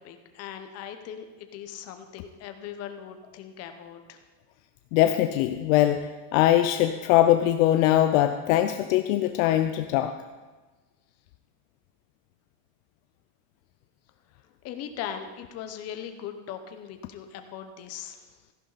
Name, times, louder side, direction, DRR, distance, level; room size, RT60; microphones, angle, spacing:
voice 1, 0.0-4.2 14.3-18.4, left 9 dB, 30° left, 7 dB, 0.8 m, -40 dB
voice 2, 4.9-10.1, left 13 dB, 55° left, 9 dB, 0.6 m, -22 dB
14.5 x 11.0 x 4.0 m, 1.3 s
supercardioid pair, 170°, 49 cm